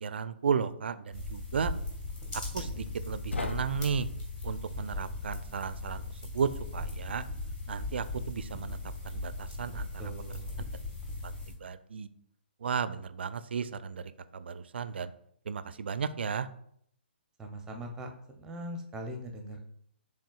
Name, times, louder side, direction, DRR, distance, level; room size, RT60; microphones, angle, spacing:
voice 1, 0.0-1.7 2.3-4.1 4.4-7.3 7.7-8.8 9.0-9.9 11.2-11.3 11.6-12.1 12.6-15.1 15.5-16.5, right 6 dB, 65° right, 14 dB, 0.3 m, -34 dB
sound 1, 1.1-11.5, left 2 dB, 15° left, 1.3 m, -38 dB
sound 2, 3.3-6.4, left 3 dB, 80° left, 0.5 m, -40 dB
voice 2, 10.0-10.6 17.4-18.1 18.4-19.6, right 1 dB, 10° right, 3 dB, 0.6 m, -40 dB
6.2 x 3.6 x 2.3 m, 0.69 s
figure-of-eight pair, 130°, 6 cm